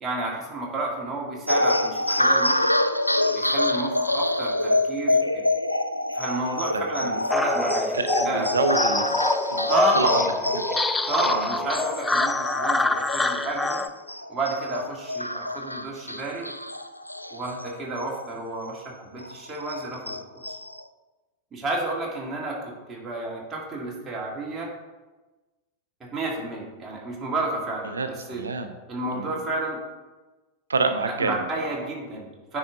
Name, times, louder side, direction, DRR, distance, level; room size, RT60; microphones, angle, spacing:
voice 1, 0.0-2.7 3.3-5.4 6.1-8.0 8.3-8.5 9.7-10.2 11.1-13.8 14.3-16.5 17.3-20.2 21.5-24.7 26.0-28.4 28.9-29.8 31.1-32.6, right 2 dB, 20° right, -3 dB, 2.1 m, -31 dB
sound 1, 1.5-18.4 18.7-18.8 19.2-20.8, left 1 dB, 90° left, 0.3 m, -27 dB
voice 2, 6.7-7.1 7.9-9.2 9.5-10.2 10.5-10.6 11.3-11.4 27.9-28.7 29.1-29.4 30.7-31.9, right 4 dB, 75° right, 8 dB, 0.6 m, -28 dB
sound 2, 7.3-13.9, left 3 dB, 10° left, 0.4 m, -25 dB
9.4 x 4.9 x 3.8 m, 1.2 s
figure-of-eight pair, 90°, 0 cm